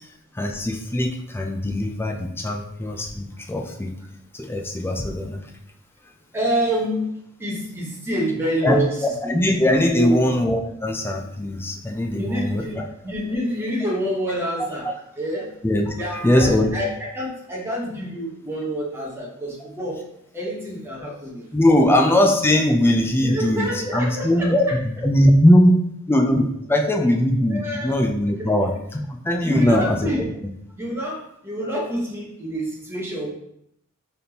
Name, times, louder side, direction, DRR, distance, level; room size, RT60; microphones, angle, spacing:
voice 1, 0.3-3.9 4.3-5.5 8.6-12.9 15.6-16.7 21.5-25.7 26.1-30.1, left 1 dB, 10° left, 2 dB, 0.4 m, -20 dB
voice 2, 6.3-7.1 7.4-9.0 9.2-9.4 9.9-10.2 12.1-12.8 13.0-15.5 16.0-20.0 20.3-21.5 21.8-21.9 23.2-24.5 27.5-27.9 29.4-30.3 30.7-33.3, equal, 10° right, -4 dB, 1.0 m, -27 dB
4.1 x 3.5 x 2.8 m, 0.75 s
head